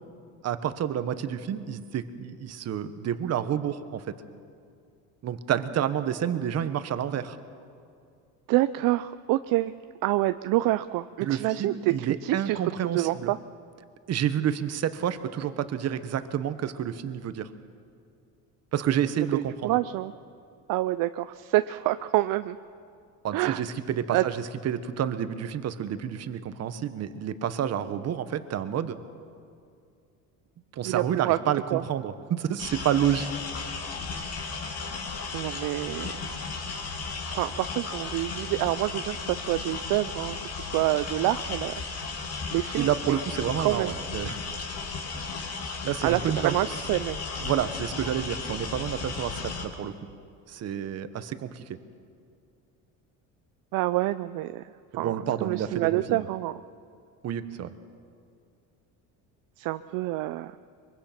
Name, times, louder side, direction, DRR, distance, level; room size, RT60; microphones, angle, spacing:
voice 1, 0.4-4.1 5.2-7.4 11.2-13.3 14.1-17.5 18.7-19.8 23.2-29.0 30.7-33.3 42.8-44.4 45.8-46.5 47.4-49.9 50.5-51.6 54.9-56.3 57.2-57.7, right 9 dB, 45° right, 11 dB, 1.2 m, -29 dB
voice 2, 8.5-9.7 10.0-12.6 12.9-13.4 19.2-20.1 20.7-22.6 23.3-23.6 24.1-24.2 30.8-31.4 31.7-31.8 35.3-36.2 37.3-43.2 43.6-43.9 46.0-47.2 53.7-55.2 55.4-56.6 59.6-60.6, right 17 dB, 65° right, 12 dB, 0.6 m, -27 dB
sound 1, 32.6-49.6, left 4 dB, 40° left, 2.6 m, -35 dB
23.5 x 23.5 x 5.9 m, 2.4 s
cardioid pair, 135°, 37 cm